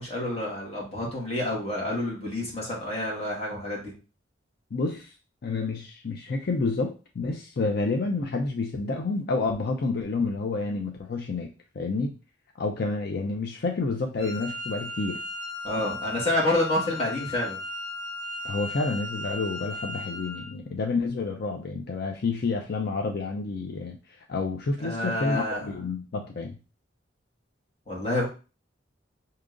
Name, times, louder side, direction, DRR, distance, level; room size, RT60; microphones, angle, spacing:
voice 1, 0.0-3.9 15.6-17.6 24.8-25.7 27.9-28.3, left 1 dB, 35° left, -3 dB, 1.6 m, -28 dB
voice 2, 4.7-5.1 5.4-11.5 11.8-12.1 12.6-15.2 18.4-24.0 24.3-26.6, left 3 dB, 50° left, 2 dB, 0.5 m, -29 dB
Wind instrument woodwind instrument, 14.2-20.5, left 2 dB, ahead, 2.2 m, -36 dB
5.0 x 2.8 x 2.5 m, 0.32 s
head